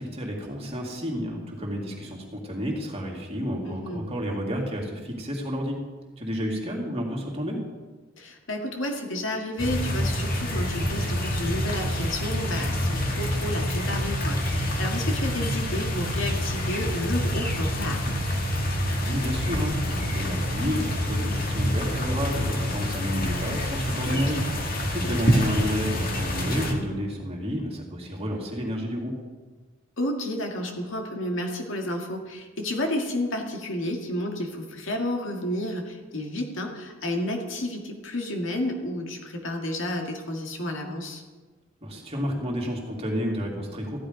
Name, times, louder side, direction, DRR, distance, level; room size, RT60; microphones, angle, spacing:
voice 1, 0.0-5.8 6.2-7.6 18.9-24.4 24.8-29.1 41.8-44.0, equal, 30° right, -1 dB, 2.5 m, -30 dB
voice 2, 3.7-4.1 8.2-18.3 24.1-24.5 30.0-41.2, left 1 dB, 75° left, 2 dB, 2.0 m, -31 dB
sound 1, 9.6-26.7, equal, 50° left, 1.9 m, -27 dB
14.5 x 11.0 x 5.1 m, 1.3 s
head